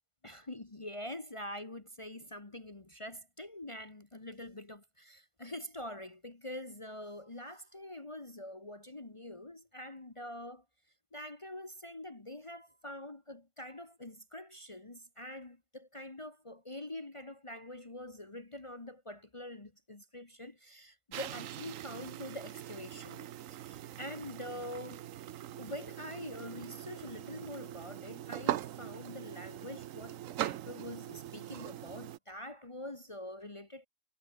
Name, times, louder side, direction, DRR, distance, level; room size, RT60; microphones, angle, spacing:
voice 1, 0.2-10.6 11.1-25.1 25.6-33.9, left 1 dB, 25° left, 1.5 m, -45 dB
sound 1, 21.1-32.2, right 12 dB, 85° right, 1.1 m, -41 dB
omnidirectional pair, 1.3 m